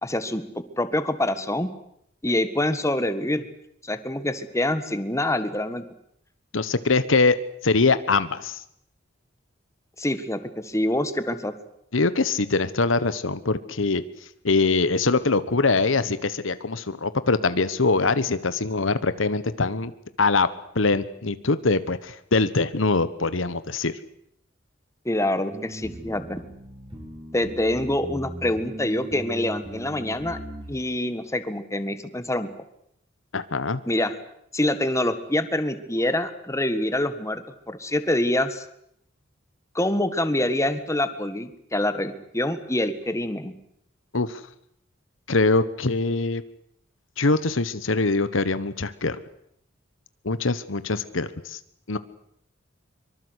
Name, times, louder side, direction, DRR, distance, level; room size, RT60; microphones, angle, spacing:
voice 1, 0.0-0.4 0.8-1.7 2.2-3.4 3.8-5.8 10.0-11.5 25.0-26.4 27.3-30.4 30.7-32.5 33.9-34.1 34.5-38.6 39.7-43.5, left 1 dB, 15° left, 10 dB, 1.7 m, -25 dB
voice 2, 6.5-7.4 7.6-8.6 11.9-14.0 14.4-19.9 20.2-20.5 20.7-23.9 33.3-33.8 44.1-44.4 45.3-46.4 47.2-49.2 50.2-51.6 51.9-52.0, left 3 dB, 80° left, 14 dB, 1.2 m, -23 dB
sound 1, 25.5-30.7, equal, 25° right, 6.0 m, -39 dB
24.0 x 23.5 x 8.2 m, 0.73 s
head